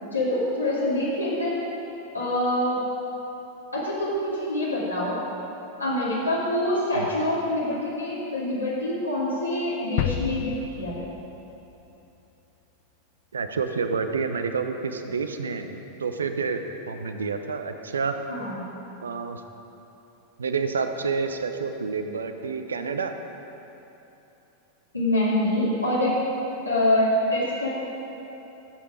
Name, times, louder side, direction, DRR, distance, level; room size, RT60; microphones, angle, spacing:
voice 1, 0.1-1.6 2.1-2.8 3.7-5.1 5.8-10.9 18.3-18.6 24.9-26.2 26.6-27.7, left 1 dB, 85° left, -9 dB, 2.7 m, -25 dB
sound 1, 10.0-11.8 12.1-12.2, left 10 dB, 45° left, 0.5 m, -31 dB
voice 2, 13.3-18.1 19.0-19.4 20.4-23.1, right 5 dB, 70° right, 7 dB, 0.7 m, -29 dB
14.0 x 8.1 x 5.1 m, 3.0 s
figure-of-eight pair, 90°, 0 cm